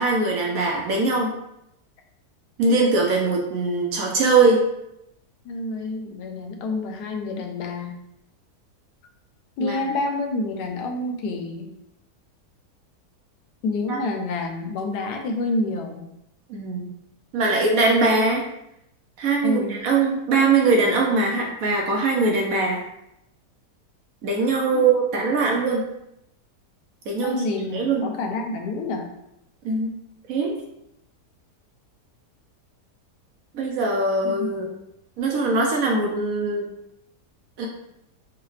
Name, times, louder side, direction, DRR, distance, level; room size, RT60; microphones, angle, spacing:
voice 1, 0.0-1.3 2.6-4.6 9.6-9.8 13.9-14.0 16.5-16.9 17.3-18.4 19.2-22.8 24.2-25.8 27.1-27.4 27.7-28.0 29.6-29.9 30.3-30.6 33.5-34.7 35.2-36.7 37.6-37.7, right 3 dB, 70° right, -1 dB, 0.9 m, -21 dB
voice 2, 5.4-7.9 9.6-11.7 13.6-16.0 19.4-19.7 24.7-24.9 25.5-25.6 27.2-29.0 34.4-34.5, left 2 dB, 75° left, 3 dB, 1.1 m, -28 dB
4.7 x 2.1 x 3.1 m, 0.82 s
omnidirectional pair, 1.8 m